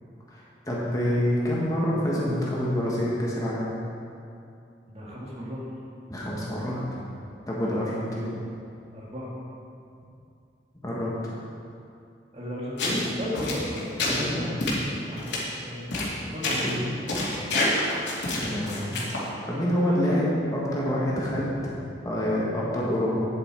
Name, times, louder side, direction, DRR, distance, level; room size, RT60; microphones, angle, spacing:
voice 1, 0.3-3.8 6.1-7.1 7.5-8.4 10.8-11.3 14.1-14.7 16.5-16.8 18.4-19.0 19.5-21.5 22.0-23.2, equal, 20° left, -6 dB, 1.6 m, -27 dB
voice 2, 4.9-5.6 8.9-9.3 12.3-17.1, equal, 35° right, -5 dB, 2.0 m, -35 dB
sound 1, 12.8-13.1 13.3-14.2 14.6-14.8 15.2-15.4 15.9-16.1 16.4-16.7 17.1-19.3, left 2 dB, 80° left, 2.4 m, -27 dB
9.9 x 7.9 x 4.7 m, 2.6 s
head